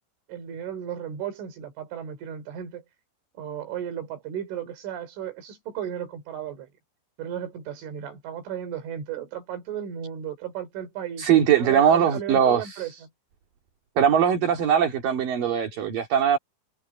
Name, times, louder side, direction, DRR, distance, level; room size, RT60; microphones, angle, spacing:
voice 1, 0.3-2.8 3.3-6.7 7.2-13.1, right 9 dB, 85° right, 6.4 m, -35 dB
voice 2, 11.2-12.9 14.0-16.4, right 8 dB, 50° right, 4.1 m, -21 dB
omnidirectional pair, 5.4 m